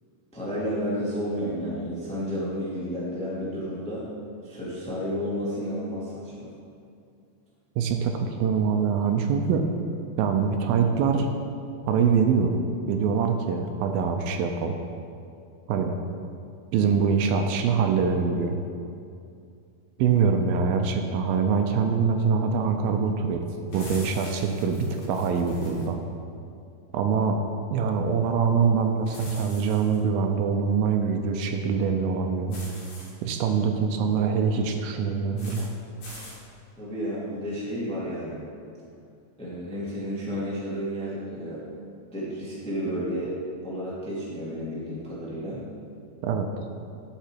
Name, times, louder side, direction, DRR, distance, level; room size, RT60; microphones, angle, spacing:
voice 1, 0.3-4.1 4.4-6.5 36.8-38.4 39.4-41.6 42.1-43.3 43.6-45.6, equal, 5° left, -8 dB, 1.2 m, -31 dB
voice 2, 7.8-9.7 10.2-11.3 11.9-12.6 12.9-14.7 15.7-16.0 16.7-18.6 20.0-24.8 25.1-26.0 26.9-27.4 27.7-32.6 33.2-35.7 46.2-46.5, right 6 dB, 85° right, 5 dB, 2.4 m, -24 dB
sound 1, 23.7-25.9 29.1-30.0 32.5-33.1 35.4-35.7 36.0-36.4, left 1 dB, 55° left, 3.1 m, -43 dB
12.0 x 5.8 x 4.5 m, 2.4 s
omnidirectional pair, 4.2 m